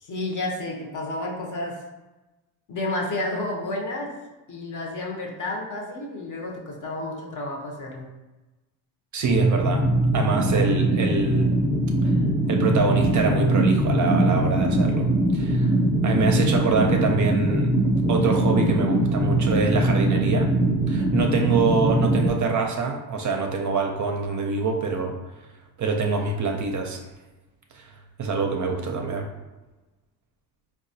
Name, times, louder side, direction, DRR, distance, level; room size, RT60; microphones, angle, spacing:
voice 1, 0.0-1.8 2.7-4.1 4.5-8.1, left 2 dB, 45° left, 0 dB, 0.8 m, -31 dB
voice 2, 9.1-9.9 10.1-11.5 12.0-12.1 12.5-15.1 15.3-15.7 16.0-17.7 18.1-20.5 20.9-25.1 25.8-27.0 27.7-27.9 28.2-29.3, right 4 dB, 45° right, 3 dB, 0.5 m, -25 dB
sound 1, 9.3-22.3, right 1 dB, 5° left, 0.7 m, -22 dB
3.9 x 2.3 x 2.6 m, 1.1 s
cardioid pair, 95°, 42 cm